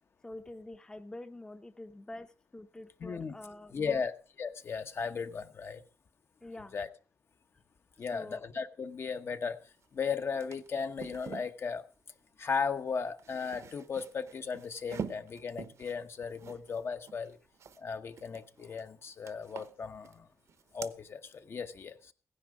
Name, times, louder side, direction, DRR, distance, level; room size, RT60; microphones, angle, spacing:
voice 1, 0.2-4.0 6.4-6.8 8.1-8.5, left 1 dB, 15° left, 9 dB, 0.7 m, -46 dB
voice 2, 3.0-3.3 3.7-4.1 4.4-5.8 6.7-6.9 8.0-11.8 12.4-17.4 17.8-20.3 20.7-22.1, left 5 dB, 50° left, 9 dB, 1.0 m, -36 dB
sound 1, 9.8-9.9 10.2-11.5 12.9-17.8 18.1-18.9 19.2-20.2 20.5-20.9, right 7 dB, 65° right, 0.9 m, -46 dB
16.0 x 10.0 x 4.9 m, 0.39 s
wide cardioid pair, 120°, 5 cm